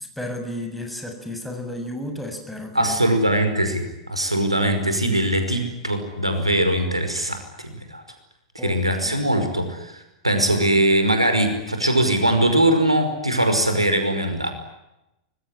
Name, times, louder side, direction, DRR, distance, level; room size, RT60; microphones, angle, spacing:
voice 1, 0.0-3.2 8.6-9.3, left 1 dB, ahead, 4 dB, 7.2 m, -33 dB
voice 2, 2.7-8.0 8.6-14.5, right 1 dB, 85° right, 7 dB, 5.3 m, -21 dB
25.5 x 22.5 x 10.0 m, 0.90 s
figure-of-eight pair, 95°, 3 cm